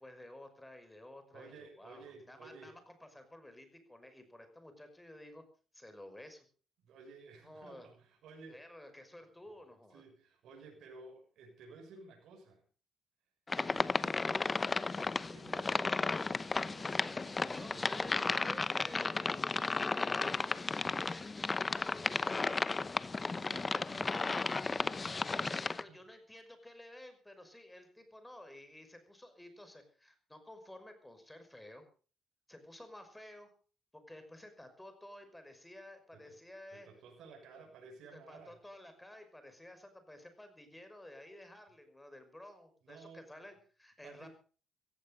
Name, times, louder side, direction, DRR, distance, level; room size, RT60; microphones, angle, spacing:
voice 1, 0.0-5.4 5.7-6.5 7.4-7.9 8.5-10.0 17.5-22.9 25.6-31.9 32.5-33.5 34.1-36.9 38.1-44.3, left 1 dB, 10° left, 8 dB, 5.6 m, -53 dB
voice 2, 1.3-2.7 6.8-8.7 9.9-12.6 13.7-14.5 15.3-18.6 23.2-26.0 36.1-36.4 36.7-38.6 42.8-43.3 44.0-44.3, right 4 dB, 75° right, 2 dB, 6.7 m, -55 dB
sound 1, 13.5-25.8, left 3 dB, 25° left, 0.8 m, -34 dB
16.0 x 16.0 x 5.3 m, 0.40 s
cardioid pair, 90°, 0 cm